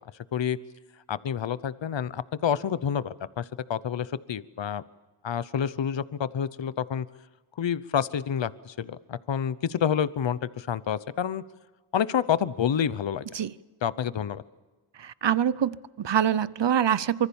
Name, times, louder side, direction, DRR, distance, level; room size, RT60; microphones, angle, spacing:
voice 1, 1.1-3.4 3.7-4.8 5.2-7.1 7.6-11.4 11.9-13.2 13.8-14.4, left 8 dB, 60° left, 16 dB, 0.9 m, -28 dB
voice 2, 15.0-17.3, right 9 dB, 60° right, 18 dB, 0.8 m, -25 dB
25.5 x 24.5 x 7.2 m, 1.2 s
wide cardioid pair, 80°, 50 cm